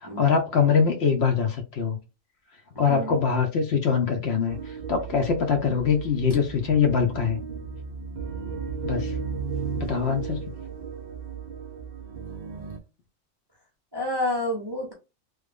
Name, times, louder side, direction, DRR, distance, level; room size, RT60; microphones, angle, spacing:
voice 1, 0.0-2.0 2.8-7.4 8.8-9.2 9.8-10.5, left 6 dB, 65° left, 0.8 m, -23 dB
sound 1, 4.5-12.8, right 5 dB, 80° right, 0.3 m, -35 dB
voice 2, 13.9-14.9, left 1 dB, 30° right, 0.5 m, -28 dB
3.1 x 2.1 x 3.3 m
omnidirectional pair, 1.3 m